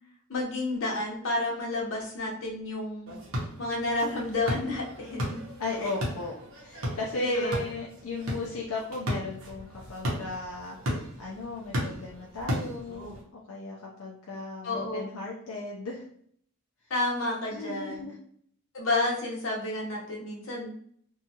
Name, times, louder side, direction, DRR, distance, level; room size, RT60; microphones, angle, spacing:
voice 1, 0.3-3.1 3.6-5.2 5.8-5.9 7.2-7.6 14.6-15.0 16.9-18.1 18.7-20.9, left 2 dB, 70° left, -3 dB, 0.9 m, -30 dB
sound 1, 3.1-13.2, equal, 70° right, 0.9 m, -35 dB
voice 2, 5.6-16.0 17.5-18.2, left 2 dB, 90° left, -4 dB, 0.6 m, -36 dB
2.7 x 2.3 x 2.8 m, 0.63 s
head